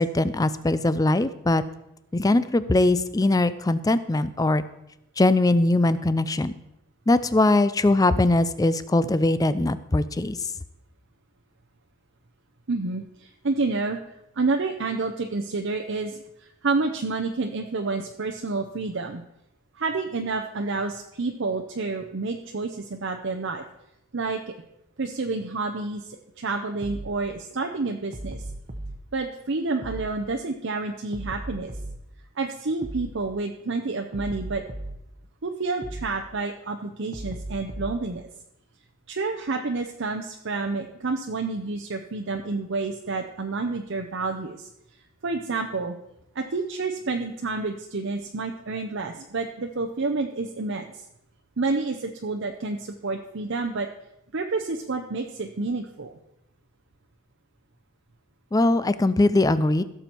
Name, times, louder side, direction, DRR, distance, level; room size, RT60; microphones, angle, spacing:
voice 1, 0.0-1.6 2.1-4.6 5.2-6.5 7.1-10.4 58.5-59.8, left 2 dB, 15° left, 14 dB, 0.4 m, -21 dB
voice 2, 12.7-14.0 14.4-19.2 19.8-23.6 24.1-24.5 25.0-28.4 29.1-31.7 32.4-34.6 35.4-38.2 39.1-44.7 45.2-45.9 46.3-50.8 51.6-53.9 54.3-56.2, right 3 dB, 55° right, 3 dB, 0.7 m, -29 dB
sound 1, 26.8-27.2 28.1-29.0 29.8-30.2 31.1-32.0 32.8-33.2 34.1-35.0 35.8-36.2 37.1-38.0, right 1 dB, 35° right, 1.0 m, -36 dB
16.0 x 7.0 x 4.5 m, 0.86 s
head